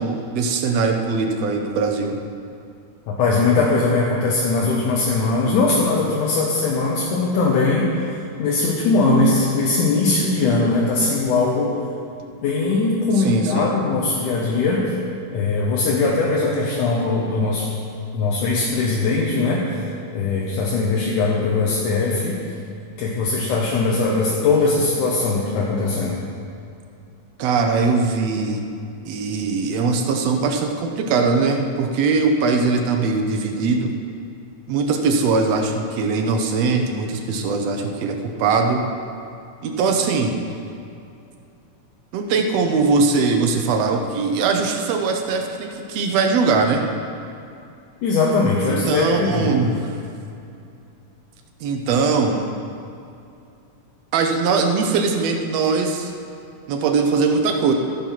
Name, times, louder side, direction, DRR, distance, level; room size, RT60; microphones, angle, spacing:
voice 1, 0.0-2.2 13.2-13.7 27.4-28.6 29.0-33.9 34.7-38.8 39.6-40.4 42.1-46.8 48.6-50.0 51.6-52.5 54.1-56.1 56.7-57.7, right 4 dB, 70° right, 4 dB, 1.6 m, -21 dB
voice 2, 3.1-11.8 12.4-15.0 15.3-17.7 18.1-19.9 20.1-22.4 23.0-26.2 48.0-49.7, left 3 dB, 75° left, -3 dB, 2.5 m, -20 dB
15.0 x 5.5 x 5.9 m, 2.6 s
omnidirectional pair, 3.7 m